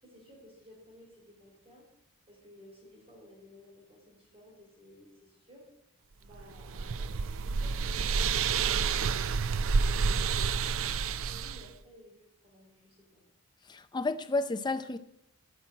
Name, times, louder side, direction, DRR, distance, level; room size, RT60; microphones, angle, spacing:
voice 1, 0.0-1.9 2.3-5.7 6.2-10.3 10.6-13.2, left 1 dB, 25° right, 4.5 m, -56 dB
sound 1, 6.3-11.7, right 5 dB, 60° right, 0.5 m, -29 dB
voice 2, 13.7-15.0, left 3 dB, 20° left, 0.5 m, -31 dB
10.0 x 6.1 x 8.6 m
head